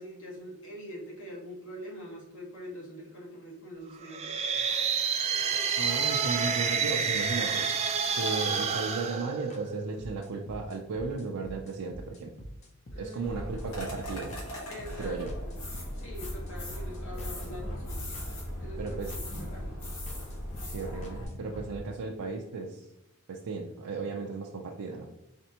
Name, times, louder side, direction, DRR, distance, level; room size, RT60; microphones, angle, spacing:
voice 1, 0.0-4.4 12.9-13.4 14.7-18.1 18.6-19.0 19.4-19.7, equal, 60° left, -2 dB, 1.3 m, -44 dB
sound 1, 4.0-10.0, right 6 dB, 30° right, 0.4 m, -29 dB
sound 2, 4.7-4.8 5.7-5.8 6.6-6.7 7.6-7.7 8.5-8.6 9.5-9.6 10.0-21.8, equal, 30° left, 0.5 m, -45 dB
voice 2, 5.8-7.7 8.1-12.5 13.0-14.3 15.0-15.3 18.8-19.1 20.7-22.9 23.3-25.1, right 4 dB, 85° right, 0 dB, 0.5 m, -35 dB
sound 3, 13.2-21.2, left 1 dB, 85° left, 1.3 m, -38 dB
4.3 x 3.3 x 2.8 m, 0.87 s
head